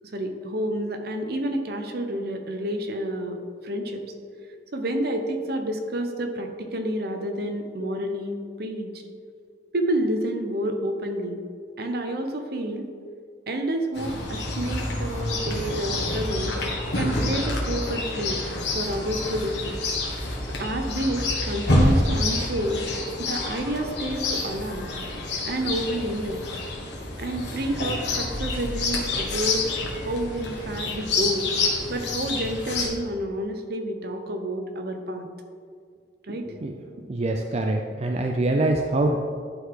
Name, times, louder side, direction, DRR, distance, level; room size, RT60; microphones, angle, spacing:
voice 1, 0.0-3.4 3.6-4.0 4.7-8.9 9.7-11.4 11.8-12.9 13.5-16.6 16.9-18.4 18.7-19.8 20.6-22.8 23.2-24.9 25.4-26.4 27.2-31.5 31.9-35.3 36.3-36.5, right 1 dB, 60° right, 5 dB, 0.9 m, -29 dB
Chirp tweet, 13.9-32.9, left 2 dB, 80° left, 1.5 m, -28 dB
voice 2, 37.1-39.2, right 2 dB, 35° right, 2 dB, 0.5 m, -24 dB
11.0 x 4.0 x 4.8 m, 2.2 s
head